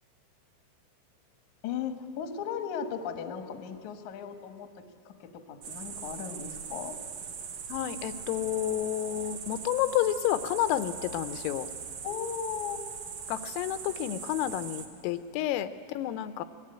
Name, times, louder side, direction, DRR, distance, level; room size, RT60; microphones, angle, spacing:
voice 1, 1.6-4.7 5.1-7.0 12.0-12.8, left 7 dB, 65° left, 6 dB, 1.9 m, -36 dB
sound 1, 5.6-14.9, right 6 dB, 60° right, 2.5 m, -40 dB
voice 2, 7.7-11.7 13.3-16.4, left 12 dB, 90° left, 11 dB, 3.5 m, -30 dB
26.0 x 21.0 x 9.0 m, 2.3 s
omnidirectional pair, 5.8 m